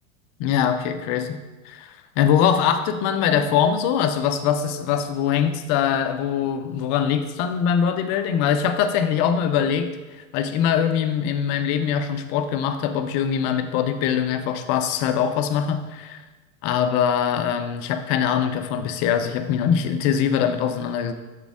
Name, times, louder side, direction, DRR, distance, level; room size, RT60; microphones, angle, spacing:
voice 1, 0.4-1.4 1.6-9.9 10.3-16.2 16.6-21.1, left 8 dB, 40° left, 8 dB, 0.5 m, -22 dB
7.1 x 4.0 x 3.5 m, 1.2 s
hypercardioid pair, 100°, 44 cm